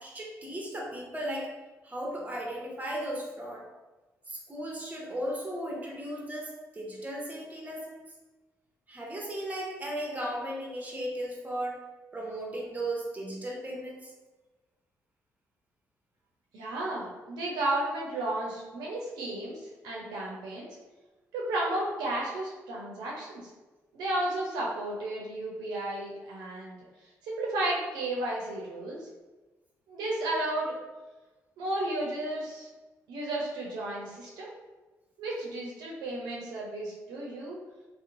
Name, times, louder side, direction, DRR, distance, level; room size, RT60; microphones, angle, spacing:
voice 1, 0.0-1.5 1.8-3.6 4.3-8.0 8.9-11.8 12.1-14.1, right 1 dB, 20° right, -2 dB, 0.8 m, -36 dB
voice 2, 16.5-20.7 21.3-23.4 23.9-26.8 27.2-29.1 29.9-30.7 31.6-32.7 33.1-34.5 35.2-37.6, right 1 dB, 80° right, -3 dB, 0.5 m, -33 dB
2.8 x 2.0 x 2.5 m, 1.2 s
supercardioid pair, 50°, 7 cm